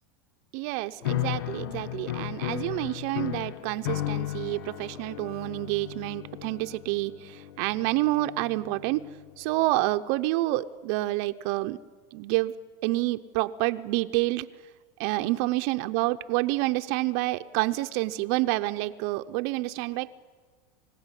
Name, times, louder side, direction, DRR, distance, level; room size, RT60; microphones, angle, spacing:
voice 1, 0.5-9.1 9.4-11.8 12.1-12.5 12.8-14.5 15.0-20.1, right 19 dB, 55° right, 9 dB, 0.7 m, -28 dB
sound 1, 1.0-9.4, left 14 dB, 85° left, 0.6 m, -35 dB
28.5 x 16.5 x 9.9 m, 1.5 s
supercardioid pair, 145°, 11 cm